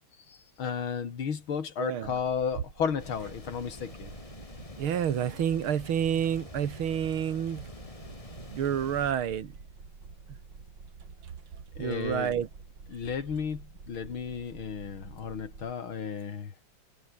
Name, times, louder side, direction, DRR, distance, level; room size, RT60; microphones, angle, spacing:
voice 1, 0.3-4.1 11.8-12.4 12.9-16.5, left 6 dB, 80° left, 3.1 m, -33 dB
voice 2, 1.8-2.2 4.8-7.7 8.0-8.1 8.5-9.5 11.8-12.5, right 9 dB, 85° right, 2.4 m, -29 dB
sound 1, 2.0-15.7, right 4 dB, 60° right, 4.0 m, -49 dB
sound 2, 3.0-9.1, left 2 dB, 15° left, 2.0 m, -47 dB
omnidirectional pair, 2.3 m